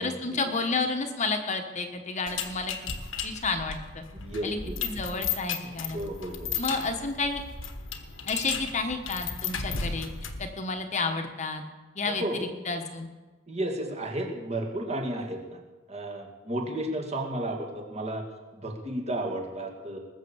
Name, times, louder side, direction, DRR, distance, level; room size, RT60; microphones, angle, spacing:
voice 1, 0.0-2.7 3.2-4.0 4.4-6.0 6.6-7.4 8.3-10.1 10.4-11.6 11.9-13.1, left 3 dB, 35° left, 5 dB, 1.2 m, -31 dB
sound 1, 2.3-10.5, left 6 dB, 70° left, 1.3 m, -35 dB
voice 2, 4.1-4.8 5.9-6.5 12.0-12.4 13.5-15.6 15.9-18.2 18.6-20.0, right 1 dB, 35° right, 1 dB, 2.2 m, -33 dB
19.5 x 7.4 x 7.2 m, 1.2 s
head